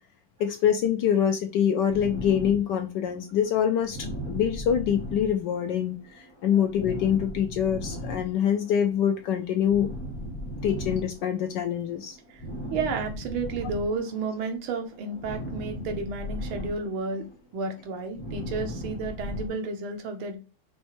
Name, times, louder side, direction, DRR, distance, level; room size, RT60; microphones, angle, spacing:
voice 1, 0.4-9.9 10.6-12.2, left 9 dB, 75° left, 6 dB, 1.0 m, -25 dB
sound 1, 1.9-14.5 14.8-19.5, equal, 20° left, 0.7 m, -38 dB
voice 2, 12.7-17.3 17.5-20.4, right 3 dB, 85° right, 4 dB, 1.8 m, -32 dB
5.4 x 3.2 x 3.0 m, 0.34 s
omnidirectional pair, 2.3 m